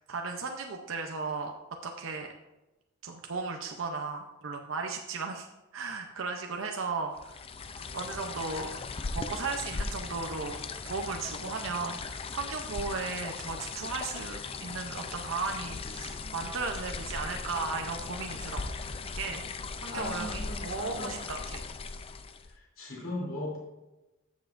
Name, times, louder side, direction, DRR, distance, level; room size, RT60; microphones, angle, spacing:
voice 1, 0.0-1.5 1.8-2.3 3.0-5.5 5.7-7.4 7.9-8.7 9.1-10.6 10.9-18.7 19.1-19.5 19.8-21.6, right 4 dB, 75° right, 3 dB, 0.7 m, -35 dB
sound 1, 7.2-22.6, left 4 dB, 30° left, 0.4 m, -38 dB
voice 2, 19.9-21.1 22.8-23.6, left 1 dB, 80° left, -4 dB, 3.3 m, -37 dB
13.5 x 7.2 x 2.6 m, 1.0 s
head